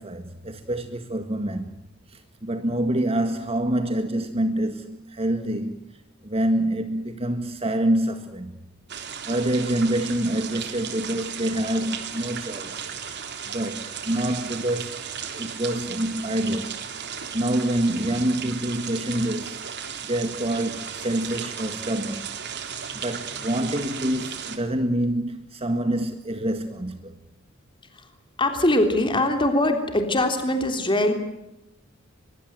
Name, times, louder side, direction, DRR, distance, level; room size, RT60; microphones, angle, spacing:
voice 1, 0.0-1.7 2.1-5.8 6.2-8.5 9.3-12.9 13.5-16.9 17.3-19.6 20.1-22.3 22.9-27.1, right 1 dB, 30° right, 1.9 m, -26 dB
sound 1, 8.9-24.6, right 7 dB, 55° right, 3.5 m, -35 dB
voice 2, 28.4-31.1, left 1 dB, 25° left, 3.3 m, -22 dB
24.0 x 23.0 x 8.0 m
head